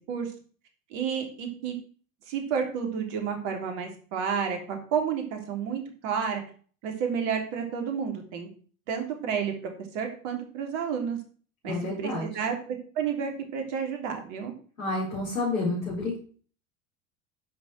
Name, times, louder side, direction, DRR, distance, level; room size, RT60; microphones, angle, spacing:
voice 1, 0.9-1.8 2.3-6.4 6.8-8.5 8.9-9.5 9.9-11.2 11.6-14.5, right 7 dB, 55° right, 4 dB, 3.4 m, -30 dB
voice 2, 11.6-12.3 14.8-16.2, left 2 dB, 80° left, -6 dB, 4.8 m, -29 dB
10.0 x 6.5 x 6.1 m, 0.42 s
figure-of-eight pair, 75°, 40 cm